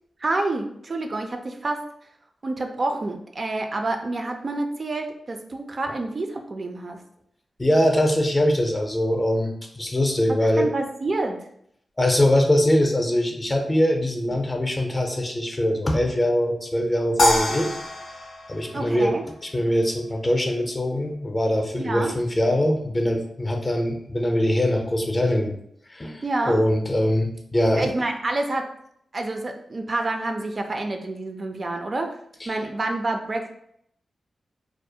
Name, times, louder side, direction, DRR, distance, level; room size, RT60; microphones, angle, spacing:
voice 1, 0.2-1.8 2.4-7.0 10.3-11.4 18.7-19.2 21.8-22.1 26.2-26.6 27.7-28.7 29.1-32.2 32.5-33.5, right 2 dB, 50° right, 4 dB, 0.3 m, -28 dB
voice 2, 7.6-10.7 12.0-17.7 18.5-19.1 19.4-25.5 25.9-27.9 32.4-32.5, left 1 dB, 25° left, 3 dB, 0.5 m, -22 dB
sound 1, 17.2-19.6, left 1 dB, 85° left, 0.5 m, -25 dB
2.3 x 2.0 x 2.7 m, 0.71 s
cardioid pair, 65°, 0 cm